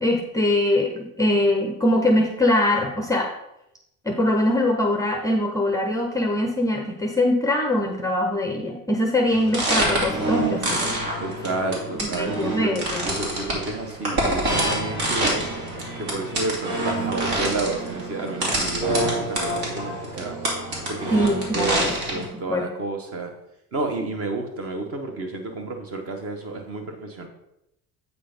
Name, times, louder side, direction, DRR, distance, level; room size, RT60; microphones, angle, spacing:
voice 1, 0.0-3.3 4.1-10.9 12.1-13.0 21.1-22.7, left 1 dB, 10° left, 2 dB, 0.5 m, -22 dB
sound 1, 9.3-22.3, right 1 dB, 75° right, 2.6 m, -26 dB
voice 2, 11.2-15.4 16.0-20.4 20.9-21.2 21.5-21.8 22.1-23.3 23.7-27.3, right 2 dB, 40° right, 4 dB, 1.2 m, -30 dB
8.1 x 3.9 x 5.1 m, 0.85 s
cardioid pair, 170°, 36 cm